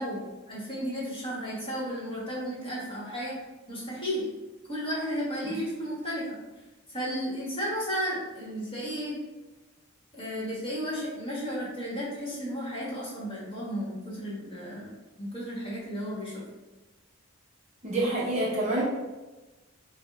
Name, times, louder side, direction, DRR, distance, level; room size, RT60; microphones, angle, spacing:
voice 1, 0.0-3.4 3.7-4.3 4.7-6.4 6.9-9.2 10.1-16.4, equal, 25° left, -6 dB, 1.2 m, -33 dB
voice 2, 17.8-18.8, right 1 dB, 30° right, -5 dB, 0.7 m, -27 dB
5.2 x 2.1 x 3.5 m, 1.2 s
head